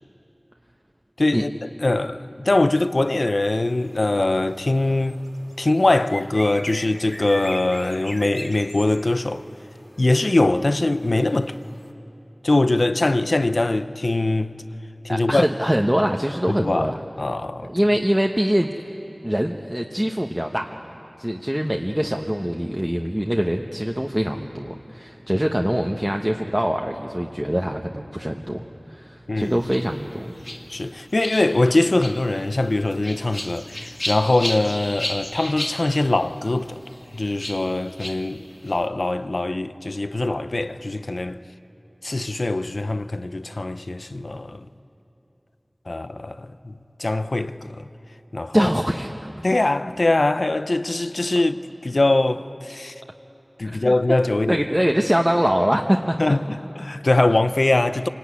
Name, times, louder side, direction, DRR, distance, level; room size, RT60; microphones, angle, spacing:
voice 1, 1.2-1.5 1.8-5.2 5.6-9.4 10.0-11.6 12.4-14.5 15.0-15.5 16.5-17.7 29.3-29.6 30.7-36.8 37.1-41.4 42.0-44.7 45.9-46.7 47.0-47.9 48.3-48.7 49.4-52.9 53.6-54.7 56.2-58.1, left 2 dB, 85° left, 0.7 m, -22 dB
sound 1, 2.6-11.9, equal, 10° left, 2.1 m, -41 dB
voice 2, 15.1-17.0 17.7-18.7 19.2-20.8 21.2-28.6 28.9-30.3 48.5-49.1 53.6-53.9 54.5-56.2, equal, 15° right, 1.1 m, -23 dB
sound 2, 29.4-38.8, left 1 dB, 45° left, 2.0 m, -34 dB
27.0 x 18.5 x 9.6 m
wide cardioid pair, 40°, 0 cm